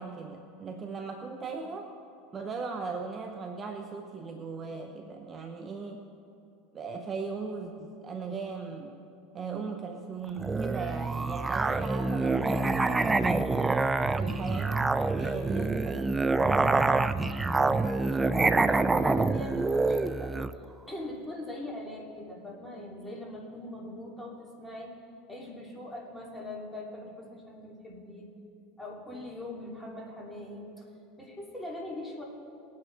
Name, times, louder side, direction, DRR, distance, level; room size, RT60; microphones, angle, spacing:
voice 1, 0.0-1.9 2.3-6.1 6.7-9.0 9.3-13.5 14.1-14.8 15.1-16.8, right 4 dB, 30° right, 4 dB, 0.9 m, -38 dB
Musical instrument, 10.4-20.6, right 3 dB, 15° right, 0.4 m, -26 dB
voice 2, 15.5-16.0 17.5-20.4 20.9-24.9 25.3-28.3 28.8-30.9 31.2-32.2, left 1 dB, 5° left, -3 dB, 3.1 m, -41 dB
20.5 x 9.5 x 3.4 m, 2.8 s
hypercardioid pair, 100°, 0 cm